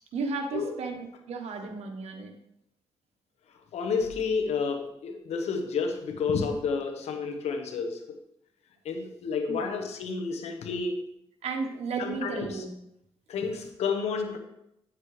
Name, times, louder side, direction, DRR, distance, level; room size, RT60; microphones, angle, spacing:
voice 1, 0.1-2.4 9.5-9.7 11.4-12.7, right 4 dB, 80° right, 4 dB, 1.2 m, -34 dB
voice 2, 3.7-8.2 8.8-11.0 12.0-12.6 13.3-14.4, left 5 dB, 85° left, 4 dB, 1.1 m, -30 dB
9.2 x 7.4 x 3.3 m, 0.80 s
cardioid pair, 70°, 11 cm